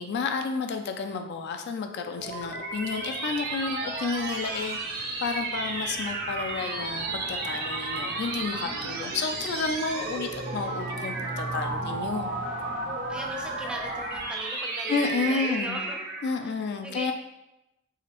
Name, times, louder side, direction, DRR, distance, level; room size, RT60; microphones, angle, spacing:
voice 1, 0.0-12.3 14.9-15.8 16.2-17.1, left 4 dB, 55° left, 6 dB, 0.3 m, -31 dB
sound 1, 1.8-16.5, right 3 dB, 50° right, 0.7 m, -33 dB
sound 2, 2.2-14.3, right 1 dB, 85° right, 1.3 m, -43 dB
voice 2, 13.1-16.0 16.4-17.1, equal, 5° right, 1 dB, 0.5 m, -38 dB
4.8 x 3.3 x 2.9 m, 0.94 s
head